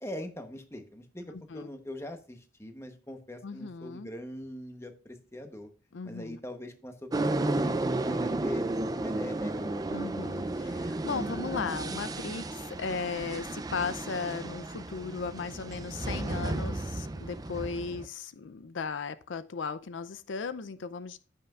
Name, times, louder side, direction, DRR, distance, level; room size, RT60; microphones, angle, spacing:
voice 1, 0.0-5.7 6.0-8.7 9.0-10.6, left 1 dB, 15° left, 0.9 m, -42 dB
voice 2, 1.3-1.7 3.4-4.1 5.9-6.4 9.9-21.2, left 5 dB, 80° left, 0.5 m, -36 dB
sound 1, 7.1-18.1, right 2 dB, 20° right, 0.4 m, -33 dB
14.5 x 5.7 x 2.4 m
head